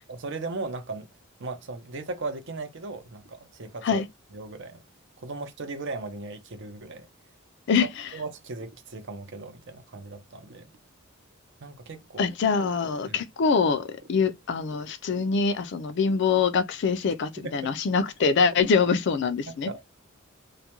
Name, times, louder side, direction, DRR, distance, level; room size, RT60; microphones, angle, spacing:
voice 1, 0.1-1.1 1.4-4.0 4.3-4.8 5.2-7.1 8.1-10.7 11.6-12.3 13.1-13.2 17.4-17.7 19.5-19.8, right 3 dB, 60° right, 0.6 m, -37 dB
voice 2, 7.7-8.1 12.2-19.7, left 5 dB, 55° left, 0.4 m, -24 dB
2.3 x 2.2 x 2.9 m
head